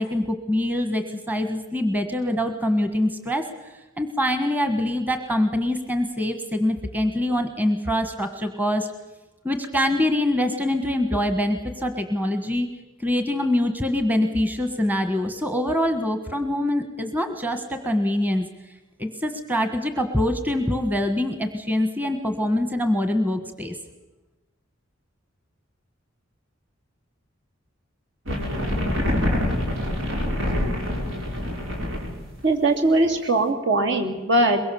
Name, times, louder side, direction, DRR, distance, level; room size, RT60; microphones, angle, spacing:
voice 1, 0.0-3.4 3.7-8.9 9.4-12.7 13.0-18.5 19.0-23.8, left 1 dB, 10° right, 7 dB, 1.5 m, -24 dB
sound 1, 28.3-32.2, left 1 dB, 90° right, 5.6 m, -25 dB
voice 2, 32.4-34.6, right 2 dB, 65° right, 4 dB, 3.1 m, -20 dB
23.0 x 22.5 x 7.0 m, 1.0 s
head